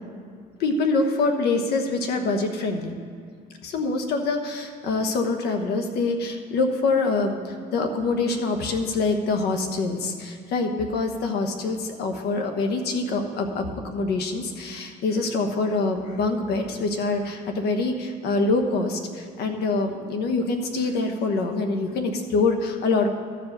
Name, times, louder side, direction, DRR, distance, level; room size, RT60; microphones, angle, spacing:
voice 1, 0.6-2.9 3.6-23.1, left 3 dB, 75° left, 5 dB, 1.2 m, -25 dB
13.0 x 5.1 x 6.6 m, 2.3 s
cardioid pair, 110°, 17 cm